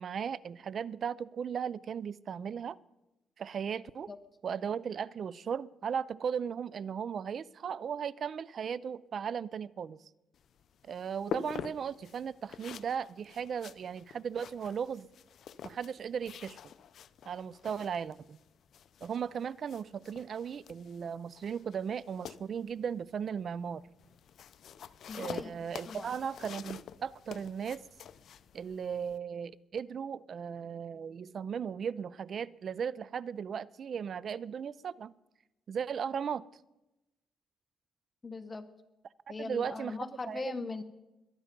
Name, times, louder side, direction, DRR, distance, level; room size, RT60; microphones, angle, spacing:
voice 1, 0.0-2.8 3.4-4.1 4.4-10.0 10.8-15.1 15.6-16.6 17.3-18.4 19.0-23.8 25.1-27.8 28.5-35.1 35.7-36.4 39.4-40.4, right 7 dB, 55° right, 0.4 m, -36 dB
sound 1, 10.3-29.2, left 8 dB, 65° left, 0.6 m, -47 dB
voice 2, 25.1-25.5 25.9-26.1 38.2-38.7 39.3-40.8, left 3 dB, 25° left, 0.9 m, -40 dB
22.5 x 8.9 x 5.2 m
cardioid pair, 90°, 0 cm